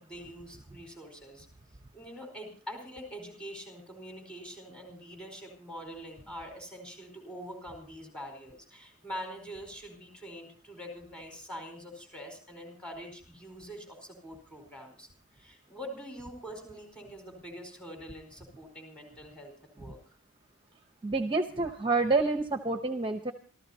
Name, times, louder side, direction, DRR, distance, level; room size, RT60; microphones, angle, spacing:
voice 1, 0.0-1.5 1.9-15.1 15.3-20.0, equal, 5° left, 2 dB, 4.6 m, -44 dB
voice 2, 21.0-23.3, right 3 dB, 25° right, 6 dB, 0.9 m, -28 dB
27.0 x 14.0 x 2.8 m, 0.41 s
head